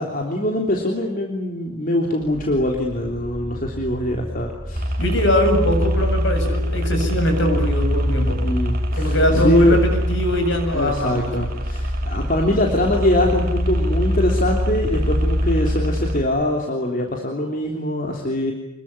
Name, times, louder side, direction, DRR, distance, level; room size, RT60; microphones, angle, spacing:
voice 1, 0.0-5.0 8.4-9.8 10.7-18.5, left 1 dB, 40° left, 1 dB, 3.4 m, -22 dB
sound 1, 2.2-16.5, equal, 5° left, 2.9 m, -34 dB
sound 2, 4.8-16.2, equal, 45° right, 2.6 m, -23 dB
voice 2, 5.0-8.4 8.9-11.5, equal, 60° left, 5 dB, 7.7 m, -21 dB
26.5 x 22.5 x 9.8 m, 0.84 s
head